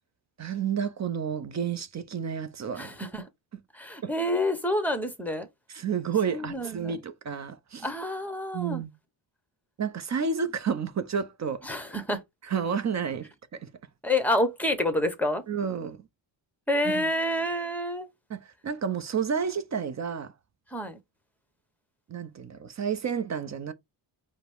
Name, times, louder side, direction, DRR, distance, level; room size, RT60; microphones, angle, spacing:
voice 1, 0.4-3.0 4.0-4.1 5.7-7.9 8.5-8.9 9.8-11.6 12.4-13.7 15.5-16.0 16.9-17.0 18.3-20.3 22.1-23.7, right 7 dB, 40° right, 0.6 m, -30 dB
voice 2, 2.8-3.3 3.7-5.5 6.3-6.9 7.8-8.8 11.6-12.2 14.0-15.4 16.7-18.1 20.7-21.0, left 1 dB, 5° left, 0.9 m, -28 dB
5.0 x 2.1 x 4.5 m
cardioid pair, 135°, 44 cm